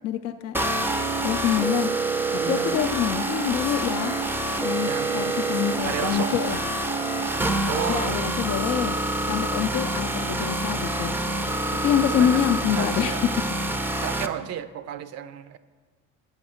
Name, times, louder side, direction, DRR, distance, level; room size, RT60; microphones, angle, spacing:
voice 1, 0.0-0.5 1.2-1.9 2.3-4.2 4.6-6.6 7.9-9.0 9.2-11.2 11.8-13.2, left 10 dB, 55° left, 7 dB, 0.4 m, -26 dB
sound 1, 0.5-14.3, right 2 dB, 5° right, 0.4 m, -27 dB
voice 2, 2.4-2.8 4.9-5.6 5.8-6.3 7.6-8.2 12.1-12.4 12.8-13.2 14.0-15.6, right 9 dB, 60° right, 13 dB, 0.5 m, -33 dB
7.8 x 6.5 x 4.3 m, 1.4 s
cardioid pair, 95°, 30 cm